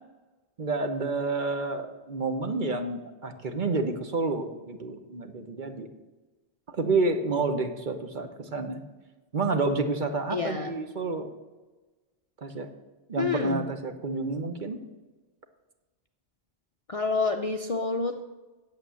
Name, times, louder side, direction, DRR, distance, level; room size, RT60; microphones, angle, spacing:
voice 1, 0.6-5.9 6.7-8.8 9.3-11.3 12.4-12.7 13.1-14.8, right 3 dB, 45° right, 6 dB, 1.0 m, -29 dB
voice 2, 10.3-10.7 13.2-13.6 16.9-18.2, left 4 dB, 45° left, 5 dB, 0.5 m, -28 dB
8.8 x 7.7 x 6.9 m, 1.2 s
omnidirectional pair, 1.2 m